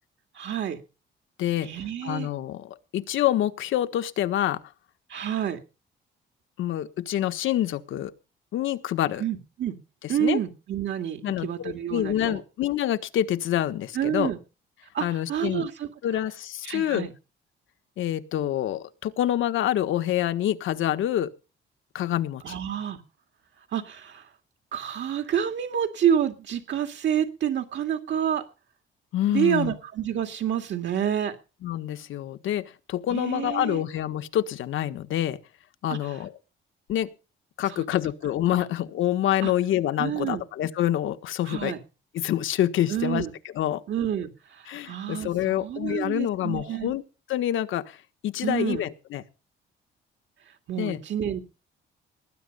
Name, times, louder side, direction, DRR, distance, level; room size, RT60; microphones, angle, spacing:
voice 1, 0.3-0.8 1.6-2.3 5.1-5.6 9.2-9.8 10.1-12.4 13.9-14.4 14.9-15.9 16.6-17.1 22.4-23.0 23.7-24.3 24.7-28.4 29.3-31.4 33.1-33.8 35.9-36.2 37.7-37.8 39.4-39.5 40.0-40.4 41.4-41.8 42.9-43.3 43.9-46.9 48.4-48.8 50.5-51.4, right 9 dB, 65° right, 6 dB, 2.4 m, -28 dB
voice 2, 1.4-1.7 2.0-4.6 6.6-8.1 8.5-9.2 10.0-10.4 11.2-14.3 15.0-15.7 16.0-17.1 18.0-21.3 21.9-22.6 29.1-29.7 31.6-35.4 35.8-36.3 36.9-37.1 37.6-41.7 42.1-43.2 43.5-43.8 44.7-47.0 47.3-48.0 48.2-49.2 50.8-51.0, left 12 dB, 80° left, 10 dB, 1.5 m, -27 dB
19.5 x 9.6 x 5.6 m, 0.33 s
cardioid pair, 90°, 20 cm